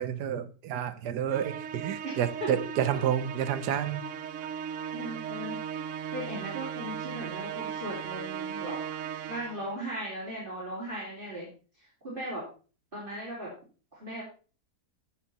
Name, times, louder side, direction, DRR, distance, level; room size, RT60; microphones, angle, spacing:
voice 1, 0.0-4.0 4.4-4.5, right 9 dB, 90° right, 13 dB, 1.5 m, -30 dB
Musical instrument, 1.3-9.8, right 8 dB, 65° right, 0.8 m, -37 dB
voice 2, 2.0-2.5 4.9-5.6 6.1-8.8 9.3-11.5 11.8-12.4 12.9-13.5 13.9-14.2, right 1 dB, 30° right, -6 dB, 3.7 m, -38 dB
14.0 x 6.6 x 4.2 m, 0.37 s
omnidirectional pair, 1.7 m